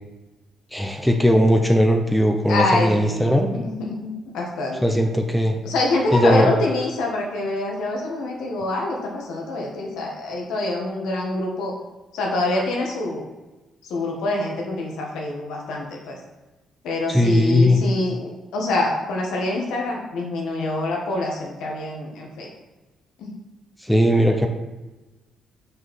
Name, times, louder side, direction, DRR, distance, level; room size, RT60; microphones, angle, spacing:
voice 1, 0.7-3.5 4.8-5.5 6.1-6.5 17.1-17.8 23.8-24.5, equal, 5° left, 4 dB, 0.8 m, -18 dB
voice 2, 2.5-4.9 5.6-11.7 12.1-13.3 13.8-16.2 16.8-22.5 23.2-23.4, left 2 dB, 85° left, 0 dB, 1.8 m, -25 dB
6.5 x 4.7 x 5.6 m, 1.1 s
cardioid pair, 90°, 0 cm